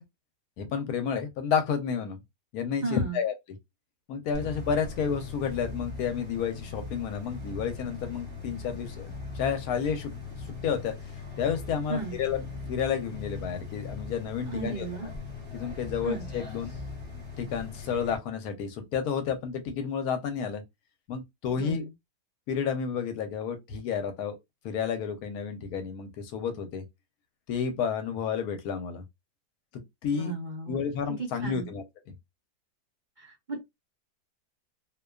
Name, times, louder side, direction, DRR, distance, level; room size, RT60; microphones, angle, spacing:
voice 1, 0.6-2.2 2.5-3.3 4.1-10.1 10.6-10.9 11.4-15.1 15.5-16.7 17.4-20.6 21.1-21.9 22.5-24.4 24.6-26.8 27.5-29.0 29.7-30.3 30.7-31.8, left 7 dB, 70° left, 1.0 m, -31 dB
voice 2, 2.8-3.2 11.9-12.2 14.5-15.1 16.0-16.3 21.5-21.9 30.1-30.8 31.2-31.7 33.2-33.6, right 4 dB, 75° right, 0.4 m, -35 dB
sound 1, 4.3-18.2, left 4 dB, 15° left, 0.3 m, -40 dB
2.6 x 2.2 x 2.2 m
omnidirectional pair, 1.8 m